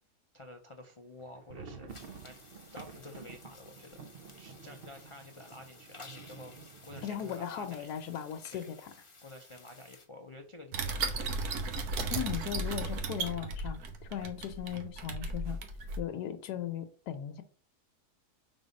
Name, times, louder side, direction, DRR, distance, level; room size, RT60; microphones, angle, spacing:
voice 1, 0.3-1.9 2.2-2.4 2.7-4.0 4.4-6.5 6.8-7.9 8.5-8.7 9.2-11.5, left 1 dB, 45° left, 2 dB, 0.3 m, -50 dB
sound 1, 1.1-8.9 9.2-9.3 9.6-9.8 10.3-10.8, right 5 dB, 55° right, 0.6 m, -51 dB
sound 2, 1.9-10.1, left 3 dB, 25° left, 0.8 m, -55 dB
voice 2, 7.0-8.9 12.1-13.8 14.1-15.6 16.0-17.4, left 9 dB, 85° left, 5 dB, 1.3 m, -37 dB
sound 3, 10.7-16.0, right 3 dB, 70° right, 1.4 m, -35 dB
5.3 x 3.8 x 5.2 m, 0.40 s
omnidirectional pair, 1.7 m